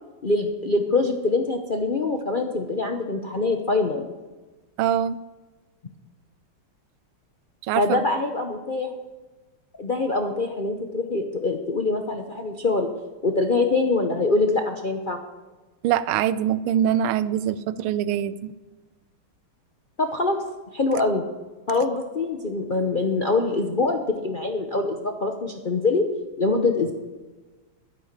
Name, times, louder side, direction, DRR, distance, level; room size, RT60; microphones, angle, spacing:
voice 1, 0.2-4.1 7.8-8.9 9.8-12.9 13.2-15.2 20.0-20.4 20.7-21.2 21.7-26.0 26.4-27.0, left 3 dB, 70° left, 3 dB, 0.4 m, -24 dB
voice 2, 4.8-5.2 7.6-8.0 15.8-18.5, right 10 dB, 80° right, 15 dB, 1.5 m, -23 dB
12.0 x 9.9 x 6.7 m, 1.2 s
omnidirectional pair, 2.3 m